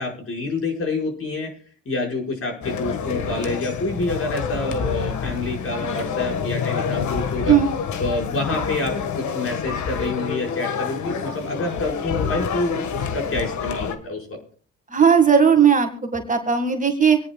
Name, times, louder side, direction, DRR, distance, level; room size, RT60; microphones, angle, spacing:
voice 1, 0.0-1.5 1.9-7.6 8.0-14.4, left 2 dB, 45° left, 0 dB, 5.5 m, -27 dB
sound 1, 2.6-14.0, left 6 dB, 70° left, 1.7 m, -27 dB
voice 2, 14.9-17.2, right 7 dB, 25° right, 5 dB, 1.9 m, -17 dB
25.5 x 10.0 x 2.4 m, 0.43 s
cardioid pair, 90°, 30 cm